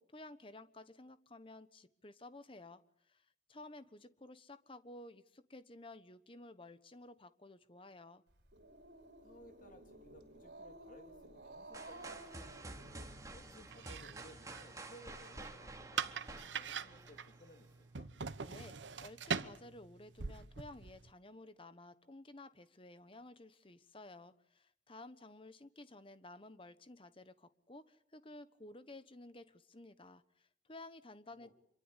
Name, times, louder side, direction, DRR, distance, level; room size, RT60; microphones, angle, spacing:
voice 1, 0.0-2.8 3.1-8.2 18.4-31.5, left 2 dB, 30° left, 13 dB, 1.2 m, -54 dB
Growling, 8.3-13.6, right 2 dB, 70° right, 5.5 m, -54 dB
voice 2, 9.2-12.6 13.3-18.1 31.3-31.5, equal, 50° left, 4 dB, 3.2 m, -60 dB
sound 1, 11.7-17.6, right 2 dB, 20° right, 2.7 m, -50 dB
sound 2, 13.7-21.1, right 6 dB, 90° right, 1.0 m, -43 dB
26.5 x 23.5 x 8.3 m, 0.70 s
head